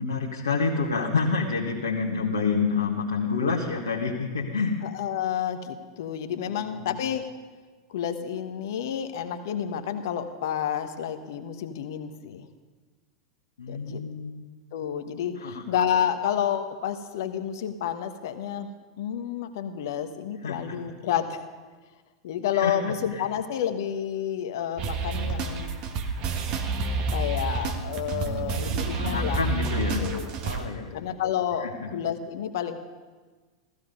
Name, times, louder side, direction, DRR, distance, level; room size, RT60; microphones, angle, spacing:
voice 1, 0.0-4.7 6.5-7.0 13.6-14.3 15.4-15.6 20.4-20.7 22.5-22.7 23.1-23.3 28.8-30.1 30.4-31.0 31.6-31.9, left 4 dB, 75° left, -3 dB, 1.7 m, -28 dB
voice 2, 4.8-7.3 7.9-12.5 13.7-14.0 14.7-18.7 19.0-21.4 22.2-25.8 27.1-29.4 30.0-30.3 30.9-32.8, left 9 dB, 60° left, 8 dB, 1.3 m, -30 dB
sound 1, 24.8-30.6, right 3 dB, 40° right, 1.7 m, -29 dB
15.5 x 15.5 x 5.3 m, 1.4 s
figure-of-eight pair, 90°, 2 cm